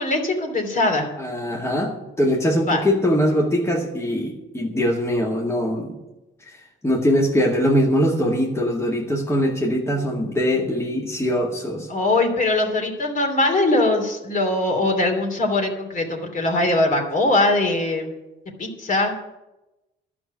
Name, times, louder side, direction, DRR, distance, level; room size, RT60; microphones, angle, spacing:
voice 1, 0.0-1.1 2.7-2.8 11.9-18.1 18.6-19.1, left 2 dB, 40° left, 3 dB, 3.0 m, -21 dB
voice 2, 1.2-6.0 6.4-6.5 6.8-11.9, equal, 15° left, -2 dB, 2.0 m, -22 dB
11.5 x 6.2 x 9.4 m, 0.99 s
cardioid pair, 90°, 20 cm